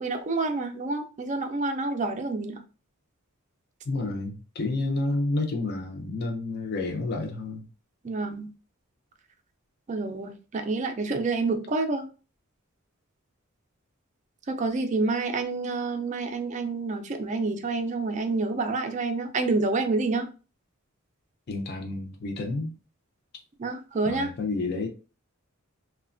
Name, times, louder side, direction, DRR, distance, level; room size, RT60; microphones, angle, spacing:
voice 1, 0.0-2.6 8.0-8.5 9.9-12.1 14.5-20.3 23.6-24.3, right 3 dB, 35° right, 0.4 m, -28 dB
voice 2, 3.9-7.7 21.5-22.8 24.0-24.9, left 2 dB, 50° left, 0.5 m, -30 dB
3.1 x 2.1 x 2.4 m
head